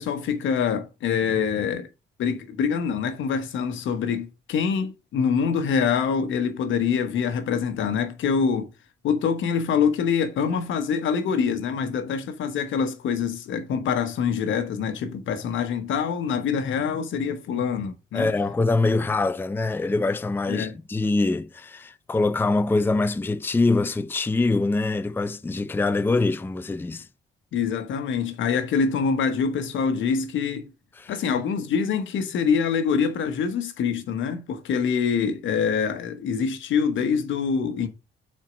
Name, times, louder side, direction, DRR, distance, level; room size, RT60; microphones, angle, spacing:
voice 1, 0.0-1.9 2.2-8.7 9.0-18.3 20.5-20.8 27.5-30.7 31.1-37.9, left 6 dB, 75° left, 1.2 m, -25 dB
voice 2, 18.1-27.1 31.0-31.1, left 3 dB, 10° left, 0.5 m, -24 dB
6.3 x 4.4 x 5.2 m
cardioid pair, 90°, 20 cm